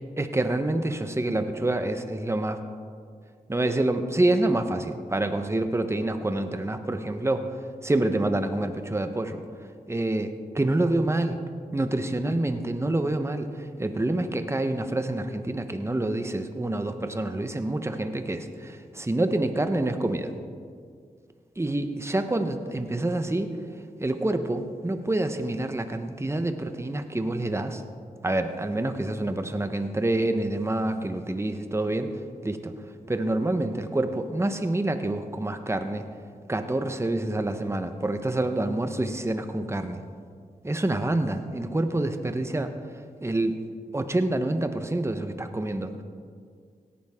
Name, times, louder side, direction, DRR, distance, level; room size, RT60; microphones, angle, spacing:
voice 1, 0.2-2.6 3.5-7.6 7.8-9.4 9.9-11.4 11.7-20.3 21.6-23.5 24.0-27.8 28.2-32.7 33.1-36.0 36.5-40.0 40.6-42.7 43.2-43.6 43.9-46.0, right 2 dB, 20° right, 8 dB, 1.0 m, -27 dB
17.5 x 11.5 x 3.7 m, 2.1 s
cardioid pair, 60°, 15 cm